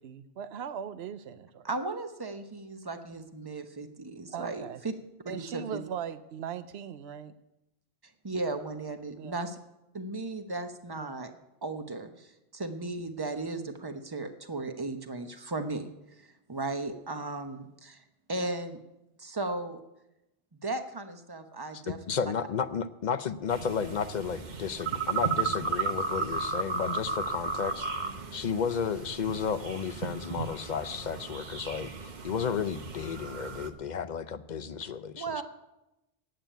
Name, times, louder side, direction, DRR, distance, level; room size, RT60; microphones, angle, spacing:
voice 1, 0.0-1.7 4.3-4.8 5.3-7.3 9.2-9.3 11.0-11.1, right 8 dB, 85° right, 12 dB, 0.9 m, -39 dB
voice 2, 1.6-4.9 5.2-5.8 8.2-9.6 9.9-11.3 11.6-15.9 16.2-18.8 19.2-19.8 20.5-22.0 22.2-22.3 34.8-35.4, right 2 dB, 25° right, 7 dB, 0.9 m, -36 dB
voice 3, 21.9-27.9 28.3-35.4, left 6 dB, 50° left, 12 dB, 0.7 m, -33 dB
sound 1, 23.5-33.7, right 5 dB, 50° right, 1.0 m, -34 dB
9.3 x 8.8 x 9.1 m, 0.92 s
omnidirectional pair, 1.0 m